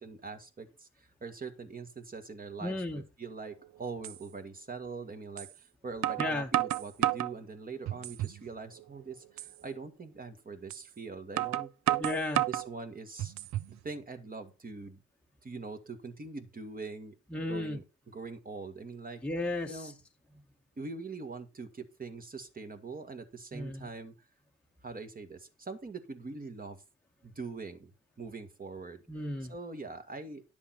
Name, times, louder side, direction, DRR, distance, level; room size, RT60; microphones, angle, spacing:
voice 1, 0.0-12.0 12.5-13.3 13.7-15.0 15.4-17.2 17.5-19.2 19.7-20.0 20.8-24.1 24.8-26.8 27.2-27.9 28.2-29.0 29.5-30.4, right 4 dB, 30° right, 8 dB, 1.8 m, -43 dB
voice 2, 2.6-3.0 6.2-6.5 12.0-12.4 17.3-17.8 19.2-19.9 23.5-23.9 29.1-29.5, left 2 dB, 5° left, 1 dB, 1.2 m, -34 dB
sound 1, 3.4-3.5 4.0-4.2 5.4-5.5 6.0-7.3 7.9-8.4 8.8-8.9 9.4-9.5 10.7-10.8 11.4-12.7 13.2-13.7, right 14 dB, 65° right, 0.5 m, -31 dB
10.5 x 7.0 x 4.4 m, 0.30 s
cardioid pair, 90°, 30 cm